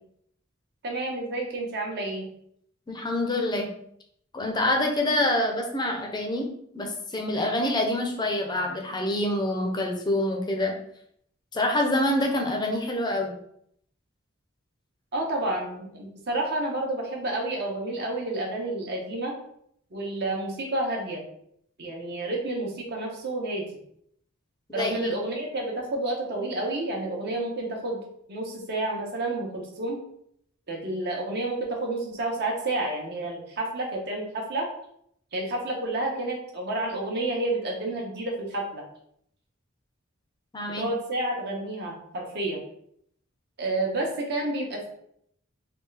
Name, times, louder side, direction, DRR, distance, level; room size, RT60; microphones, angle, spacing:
voice 1, 0.8-2.3 15.1-19.3 19.9-21.2 21.8-23.6 24.7-28.0 28.3-30.0 30.7-34.7 35.3-38.8 40.8-42.6 43.6-44.9, right 2 dB, 55° right, 0 dB, 0.8 m, -30 dB
voice 2, 2.9-3.7 4.3-6.5 6.7-10.7 11.5-13.3 24.7-24.9 40.5-40.9, left 1 dB, 20° left, 2 dB, 0.5 m, -26 dB
3.4 x 2.3 x 3.2 m, 0.70 s
head